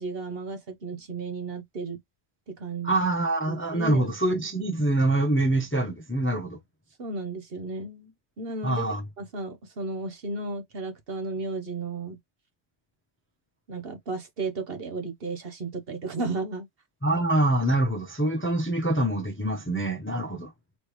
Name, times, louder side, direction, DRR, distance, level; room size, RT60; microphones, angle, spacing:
voice 1, 0.0-2.0 2.5-2.9 3.5-4.0 7.0-8.9 9.2-12.2 13.7-16.7, right 3 dB, 60° right, 1.2 m, -34 dB
voice 2, 2.8-6.6 8.6-9.0 17.0-20.5, right 1 dB, 15° left, 0.6 m, -25 dB
4.2 x 3.3 x 3.1 m
omnidirectional pair, 1.2 m